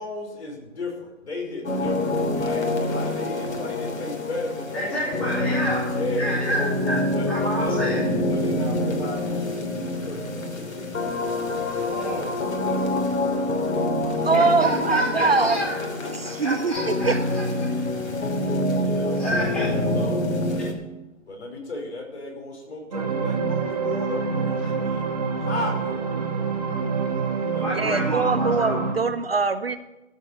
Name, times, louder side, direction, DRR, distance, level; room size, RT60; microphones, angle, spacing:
voice 1, 0.0-1.9 2.4-5.3 5.9-6.6 7.1-7.8 8.3-11.4 11.7-14.7 15.2-16.3 18.8-20.2 21.3-25.1 25.4-26.0 27.5-28.0 28.4-28.6, left 2 dB, 55° left, 0 dB, 5.3 m, -35 dB
sound 1, 1.6-20.7, left 1 dB, 85° left, 3.2 m, -26 dB
voice 2, 4.7-5.8 6.2-8.0 11.8-12.3 14.3-15.8 16.4-17.7 19.2-19.7 20.6-20.7 24.6-24.7 27.6-28.8, equal, 5° left, -10 dB, 3.2 m, -29 dB
voice 3, 14.2-15.6 16.2-17.2 27.8-29.8, right 4 dB, 50° right, 12 dB, 0.6 m, -23 dB
sound 2, 22.9-28.9, right 5 dB, 30° right, 1.4 m, -26 dB
15.0 x 8.4 x 7.2 m, 0.97 s
hypercardioid pair, 175°, 40 cm